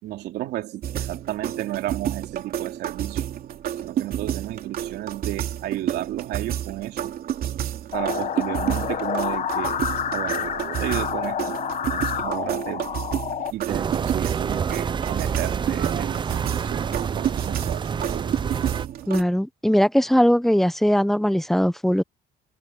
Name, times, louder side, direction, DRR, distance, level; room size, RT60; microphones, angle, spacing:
voice 1, 0.0-3.3 3.8-7.1 7.9-9.8 10.1-11.6 11.9-13.0 13.5-18.4, right 14 dB, 80° right, 3.0 m, -33 dB
sound 1, 0.8-19.2, right 10 dB, 60° right, 3.4 m, -30 dB
sound 2, 7.9-13.5, left 9 dB, 45° left, 1.2 m, -28 dB
sound 3, 13.7-18.9, right 6 dB, 25° right, 0.5 m, -28 dB
voice 2, 19.1-22.0, equal, ahead, 0.8 m, -20 dB
cardioid pair, 110°, 17 cm